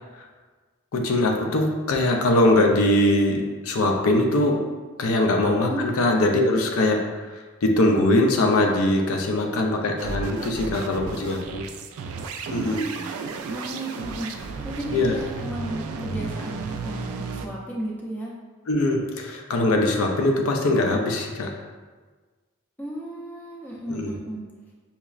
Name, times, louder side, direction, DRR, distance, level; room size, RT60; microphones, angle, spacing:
voice 1, 0.9-4.7 5.0-7.1 7.3-11.7 12.5-12.8 14.9-15.2 18.7-21.5 23.9-24.1, left 1 dB, 85° left, 2 dB, 0.5 m, -22 dB
voice 2, 5.7-6.1 12.5-13.1 13.5-18.3 22.8-24.4, right 1 dB, 10° left, -4 dB, 0.4 m, -34 dB
sound 1, 10.0-17.5, right 4 dB, 90° right, 0.3 m, -33 dB
5.5 x 2.0 x 2.4 m, 1.4 s
head